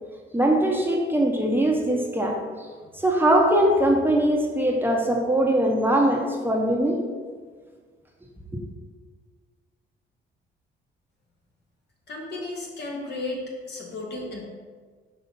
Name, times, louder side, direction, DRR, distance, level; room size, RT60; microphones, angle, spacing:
voice 1, 0.3-2.4 2.9-7.1 8.5-8.6, right 1 dB, 10° right, 0 dB, 1.0 m, -21 dB
voice 2, 12.1-14.4, left 2 dB, 60° left, -2 dB, 2.0 m, -34 dB
5.6 x 4.8 x 5.4 m, 1.5 s
cardioid pair, 90°, 20 cm